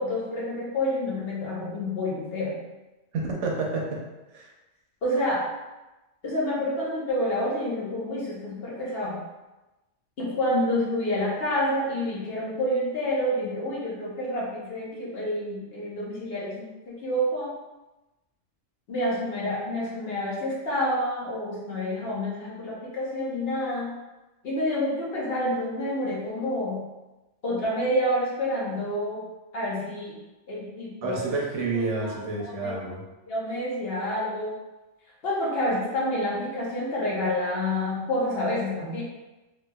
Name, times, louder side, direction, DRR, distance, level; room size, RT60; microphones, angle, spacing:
voice 1, 0.0-2.6 5.0-5.5 6.2-9.2 10.2-17.5 18.9-24.0 24.4-26.8 27.4-29.3 29.5-30.2 30.5-31.2 32.0-32.7 33.3-34.6 35.2-39.0, left 1 dB, 55° left, -6 dB, 1.1 m, -28 dB
voice 2, 3.1-4.0 4.3-4.5 31.0-33.0, right 3 dB, 80° right, -1 dB, 1.0 m, -29 dB
3.3 x 3.0 x 2.2 m, 1.1 s
omnidirectional pair, 1.2 m